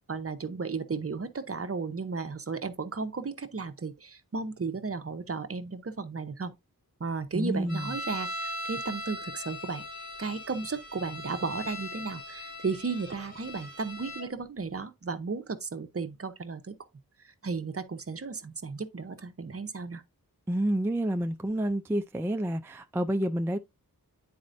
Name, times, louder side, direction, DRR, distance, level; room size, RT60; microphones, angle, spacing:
voice 1, 0.1-6.5 7.0-16.7 17.2-20.0, right 4 dB, 40° right, 0.7 m, -34 dB
voice 2, 7.3-7.9 20.5-23.6, right 1 dB, 5° right, 0.3 m, -29 dB
sound 1, 7.7-14.3, left 1 dB, 45° left, 2.4 m, -39 dB
9.5 x 4.2 x 2.5 m
wide cardioid pair, 90°, 36 cm